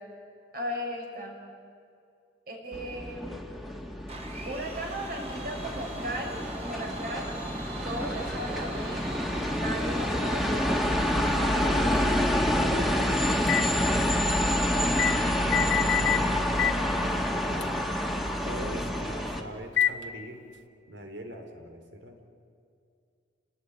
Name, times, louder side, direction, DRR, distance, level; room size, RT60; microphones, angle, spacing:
voice 1, 0.5-1.4 2.5-3.4 4.5-7.3 7.8-9.0 9.4-10.9 11.4-11.8, equal, 55° right, 1 dB, 6.0 m, -36 dB
sound 1, 2.7-19.4, equal, ahead, 2.1 m, -28 dB
Domestic sounds home sounds, 4.1-12.7, right 2 dB, 35° right, 4.5 m, -41 dB
sound 2, 13.5-13.7 15.0-15.2 15.5-16.2 16.6-16.8 17.6-17.7 19.8-20.0, left 10 dB, 80° left, 1.2 m, -25 dB
voice 2, 15.3-17.8 18.4-20.4 20.9-22.2, right 1 dB, 80° right, 5 dB, 4.3 m, -42 dB
29.5 x 19.5 x 9.9 m, 2.4 s
head